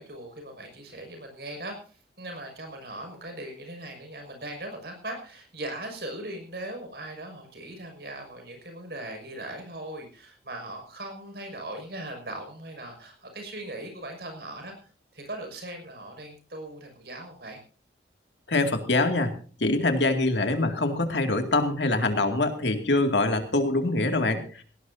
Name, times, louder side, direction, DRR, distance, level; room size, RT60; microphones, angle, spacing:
voice 1, 0.0-17.6, right 1 dB, 60° right, 4 dB, 6.2 m, -39 dB
voice 2, 18.5-19.3 19.6-24.6, left 2 dB, 80° left, 5 dB, 2.4 m, -24 dB
18.0 x 18.0 x 2.8 m, 0.40 s
head